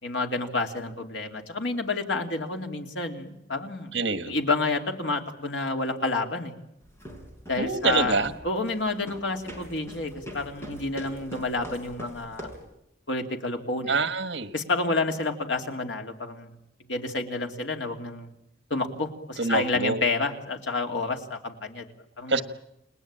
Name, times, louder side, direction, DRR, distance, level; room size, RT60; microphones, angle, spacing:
voice 1, 0.0-4.0 4.3-6.5 7.5-12.5 13.1-14.0 14.5-16.6 16.9-18.3 18.7-21.9 22.2-22.4, left 3 dB, 85° left, 3 dB, 3.0 m, -29 dB
voice 2, 3.9-4.3 7.6-8.3 13.9-14.5 19.4-20.0 22.3-22.4, right 3 dB, 70° right, 10 dB, 1.6 m, -25 dB
sound 1, 6.8-12.7, equal, 15° left, 5.5 m, -42 dB
29.5 x 19.5 x 8.9 m, 0.82 s
head